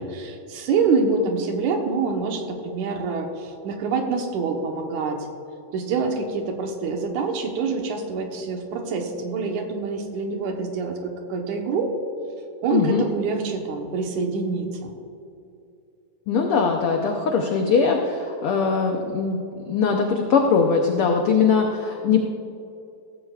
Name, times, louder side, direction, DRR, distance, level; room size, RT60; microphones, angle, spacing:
voice 1, 0.0-5.2 5.7-11.9 12.6-14.9, right 4 dB, 75° right, 3 dB, 2.6 m, -26 dB
voice 2, 12.7-13.0 16.3-19.4 19.6-22.2, left 5 dB, 80° left, 2 dB, 1.2 m, -21 dB
16.0 x 15.0 x 2.4 m, 2.6 s
omnidirectional pair, 3.5 m